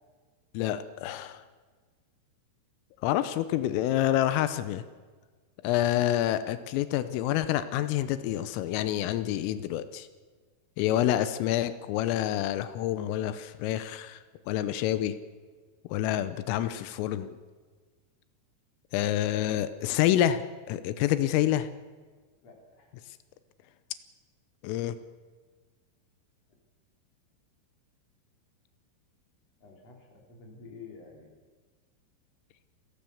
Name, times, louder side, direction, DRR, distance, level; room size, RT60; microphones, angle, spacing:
voice 1, 0.6-1.4 3.0-4.8 5.6-10.1 10.8-14.2 14.5-15.2 15.9-17.4 18.9-21.7 24.6-25.0, left 12 dB, 90° left, 12 dB, 3.5 m, -27 dB
voice 2, 22.4-22.9 29.6-31.3, left 4 dB, 35° left, 1 dB, 4.6 m, -49 dB
29.0 x 15.5 x 7.2 m, 1.5 s
omnidirectional pair, 5.8 m